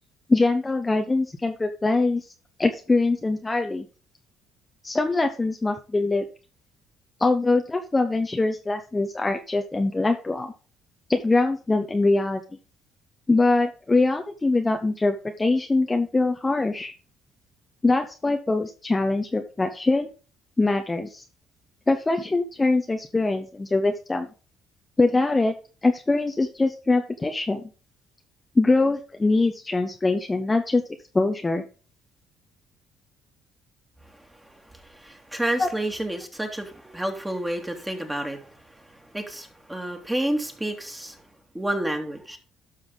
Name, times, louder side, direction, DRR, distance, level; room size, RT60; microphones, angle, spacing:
voice 1, 0.3-2.3 2.6-3.9 4.8-6.3 7.2-10.5 11.1-12.4 13.3-16.9 17.8-20.1 20.6-21.2 21.9-24.3 25.0-25.5 25.8-27.6 28.5-30.8 31.1-31.6 35.6-35.7, left 3 dB, 20° left, 5 dB, 1.0 m, -23 dB
voice 2, 34.4-38.5 38.9-41.2 41.5-42.4, right 1 dB, 10° right, 4 dB, 2.5 m, -30 dB
12.0 x 5.7 x 4.0 m, 0.36 s
supercardioid pair, 60°, 0 cm